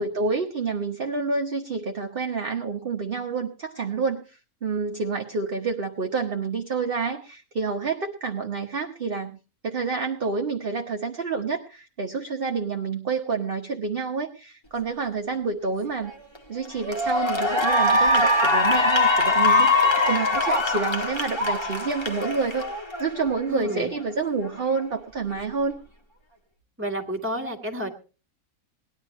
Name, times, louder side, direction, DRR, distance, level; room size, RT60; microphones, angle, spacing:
voice 1, 0.0-9.4 9.6-16.1 16.5-22.7 23.0-25.8, right 4 dB, 40° right, 2 dB, 1.2 m, -28 dB
Cheering / Applause, 16.1-16.4 16.8-23.3, left 2 dB, 20° left, 1.7 m, -22 dB
Harp, 19.8-22.3 25.8-25.9, left 7 dB, 55° left, 3.9 m, -47 dB
voice 2, 23.5-23.9 26.8-27.9, right 1 dB, 10° right, 1 dB, 2.2 m, -30 dB
19.0 x 11.0 x 4.3 m, 0.35 s
omnidirectional pair, 1.6 m